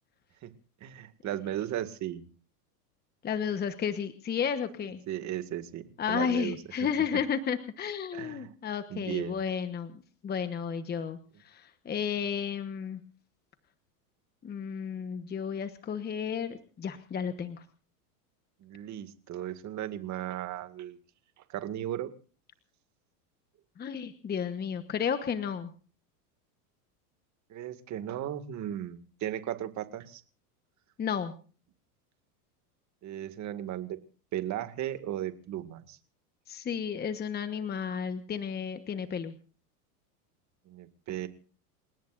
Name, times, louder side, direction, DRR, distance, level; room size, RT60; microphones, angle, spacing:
voice 1, 0.8-2.3 5.1-5.8 6.1-6.6 8.1-8.5 8.9-9.4 11.9-12.0 18.6-21.0 21.5-22.1 27.5-30.2 33.0-34.0 34.3-36.0 40.7-41.3, right 12 dB, 35° right, 9 dB, 2.1 m, -36 dB
voice 2, 3.2-5.0 6.0-13.0 14.4-17.6 23.8-25.7 31.0-31.3 36.5-39.3, left 7 dB, 20° left, 10 dB, 1.1 m, -32 dB
29.0 x 18.0 x 2.6 m, 0.39 s
supercardioid pair, 125°, 46 cm